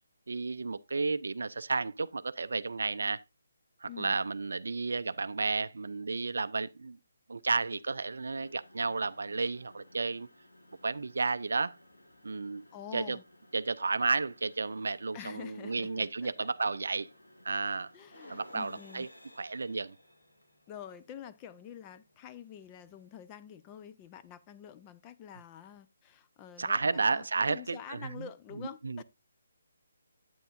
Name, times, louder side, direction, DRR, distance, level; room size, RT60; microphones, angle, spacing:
voice 1, 0.3-3.2 3.8-7.0 7.3-10.3 10.8-11.8 12.2-12.6 12.9-13.2 13.5-17.1 17.4-17.9 18.3-19.1 19.4-19.9 26.6-28.3 28.8-29.0, right 4 dB, 60° right, 0.4 m, -32 dB
voice 2, 3.9-4.2 12.7-13.2 15.1-16.5 17.9-19.1 20.7-29.0, left 9 dB, 20° left, 0.5 m, -47 dB
sound 1, 8.3-23.3, left 1 dB, 80° left, 2.2 m, -59 dB
9.1 x 8.5 x 2.5 m
figure-of-eight pair, 140°, 0 cm